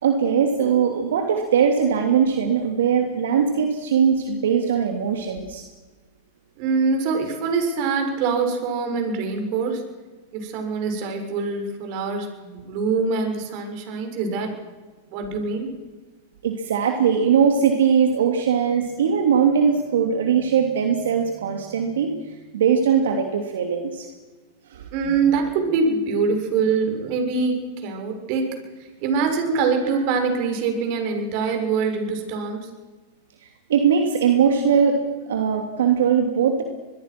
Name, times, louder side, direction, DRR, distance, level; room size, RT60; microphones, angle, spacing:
voice 1, 0.0-5.6 16.4-24.1 24.7-24.9 33.7-36.6, right 7 dB, 80° right, 4 dB, 3.1 m, -20 dB
voice 2, 6.6-9.9 10.3-14.5 15.1-15.7 24.9-28.6 29.0-32.7, right 4 dB, 50° right, 5 dB, 6.6 m, -24 dB
25.5 x 22.0 x 6.3 m, 1.3 s
hypercardioid pair, 125°, 0 cm